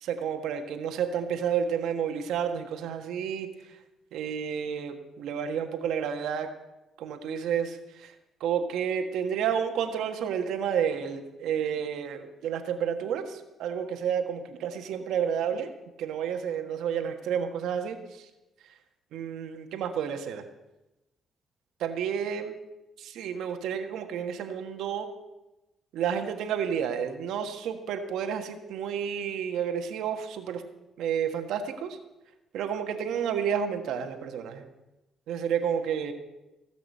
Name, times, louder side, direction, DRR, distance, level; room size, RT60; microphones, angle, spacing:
voice 1, 0.0-3.8 4.1-6.5 7.0-8.1 8.4-15.7 16.0-18.3 19.1-20.4 21.8-22.5 23.0-25.1 25.9-30.6 31.0-32.0 32.5-34.7 35.3-36.1, right 8 dB, 85° right, 7 dB, 1.5 m, -30 dB
17.0 x 6.1 x 8.3 m, 1.0 s
cardioid pair, 90°, 0 cm